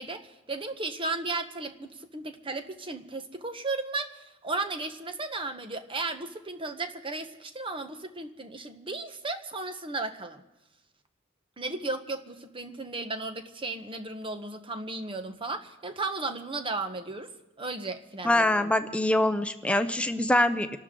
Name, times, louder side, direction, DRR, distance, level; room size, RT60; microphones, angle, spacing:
voice 1, 0.0-10.4 11.6-17.3 17.6-18.5, right 3 dB, 25° right, 7 dB, 1.1 m, -35 dB
voice 2, 18.2-20.8, left 1 dB, 5° left, 9 dB, 0.6 m, -24 dB
27.0 x 12.5 x 3.8 m, 0.96 s
head